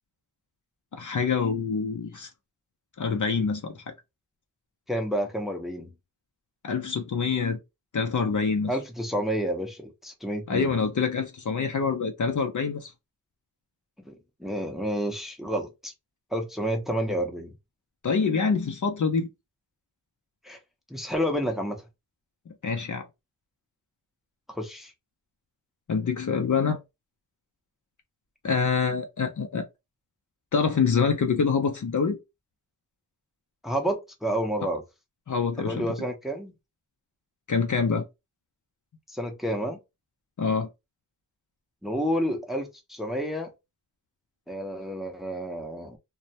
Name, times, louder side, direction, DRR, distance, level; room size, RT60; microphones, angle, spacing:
voice 1, 0.9-2.3 3.0-3.8 6.6-7.6 7.9-8.7 10.5-12.9 18.0-19.3 22.5-23.1 25.9-26.8 28.4-29.7 30.5-32.2 35.3-35.9 37.5-38.0 40.4-40.7, left 5 dB, 45° left, 0.5 m, -26 dB
voice 2, 4.9-5.9 8.7-10.7 14.1-15.9 16.3-17.5 20.4-20.6 20.9-21.8 24.5-24.9 33.6-34.8 35.6-36.5 39.1-39.8 41.8-43.5 44.5-46.0, equal, ahead, 0.6 m, -30 dB
2.2 x 2.1 x 2.7 m
wide cardioid pair, 70°, 41 cm